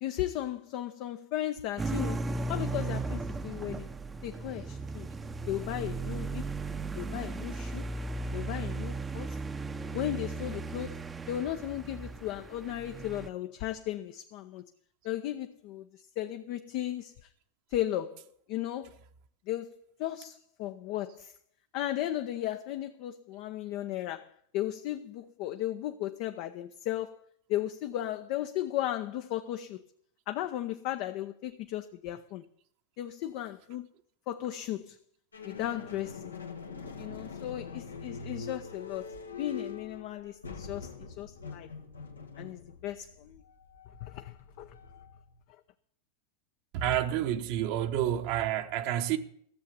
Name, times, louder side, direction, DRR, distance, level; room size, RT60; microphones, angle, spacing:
voice 1, 0.0-3.9 4.2-5.1 5.5-6.5 6.9-7.9 8.3-9.4 9.9-11.0 11.3-14.6 15.0-17.3 17.7-18.2 18.5-19.0 19.5-21.3 21.7-27.2 27.5-29.8 30.3-32.4 33.0-33.9 34.3-35.0 35.4-36.4 37.0-41.7 42.4-43.4 44.0-44.8, left 13 dB, 50° left, 0.7 m, -36 dB
sound 1, 1.8-13.3, right 3 dB, 15° right, 0.7 m, -36 dB
sound 2, 35.3-45.4, left 5 dB, 90° left, 1.5 m, -44 dB
voice 2, 46.7-49.2, right 11 dB, 55° right, 1.1 m, -29 dB
14.0 x 7.6 x 8.2 m
hypercardioid pair, 95°, 0 cm